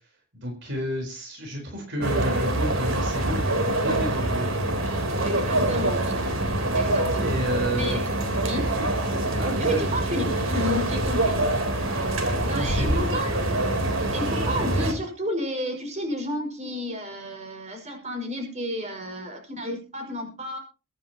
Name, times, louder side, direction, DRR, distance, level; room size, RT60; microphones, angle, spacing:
voice 1, 0.3-4.5 7.2-8.0 8.7-8.9 9.3-9.9 12.5-13.2, equal, 60° right, 1 dB, 4.2 m, -31 dB
sound 1, 2.0-14.9, right 1 dB, 85° right, 3.6 m, -25 dB
voice 2, 5.2-6.3 6.7-7.4 7.7-8.0 8.4-8.8 9.6-11.4 12.3-13.4 14.1-20.6, left 1 dB, 35° right, 3 dB, 5.9 m, -32 dB
23.5 x 9.9 x 2.9 m, 0.33 s
head